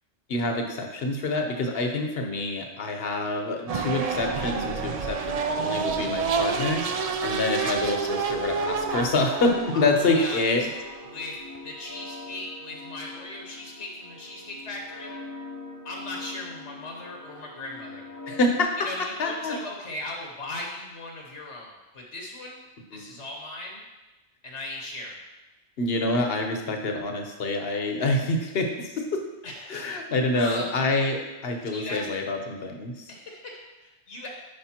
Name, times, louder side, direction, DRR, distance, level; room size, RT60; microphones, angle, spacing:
voice 1, 0.3-10.7 18.3-18.7 19.2-19.6 22.9-23.0 25.8-29.2 29.7-33.1, left 2 dB, 60° left, 3 dB, 1.1 m, -27 dB
sound 1, 3.7-11.6, right 5 dB, 55° right, 0.4 m, -29 dB
sound 2, 8.4-18.6, left 3 dB, 20° left, 0.7 m, -42 dB
voice 2, 9.7-10.4 11.1-11.4 11.6-15.1 15.8-18.0 18.8-22.6 22.9-23.8 24.4-25.2 29.4-29.8 30.3-30.7 31.7-32.1 33.1-34.3, left 2 dB, 75° left, -1 dB, 1.4 m, -38 dB
9.9 x 5.2 x 2.9 m, 1.1 s
omnidirectional pair, 1.2 m